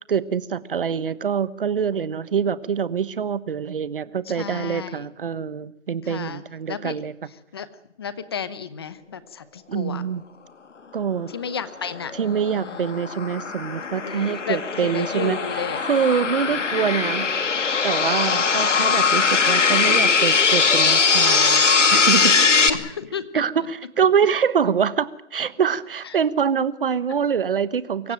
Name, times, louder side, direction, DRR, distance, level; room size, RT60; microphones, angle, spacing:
voice 1, 0.1-7.1 9.7-10.2 10.9-11.3 12.1-15.4 15.8-17.3 17.8-21.6 21.9-22.4 23.3-28.1, right 7 dB, 50° right, 16 dB, 1.2 m, -24 dB
voice 2, 4.3-5.1 6.0-6.4 6.7-6.9 7.5-7.7 8.0-10.0 11.3-12.1 12.6-12.9 14.0-15.8 22.7-23.4 28.0-28.1, left 6 dB, 20° left, 14 dB, 0.9 m, -32 dB
sound 1, 11.9-22.7, left 5 dB, 90° left, 2.2 m, -20 dB
24.0 x 15.0 x 9.1 m, 0.81 s
hypercardioid pair, 170°, 36 cm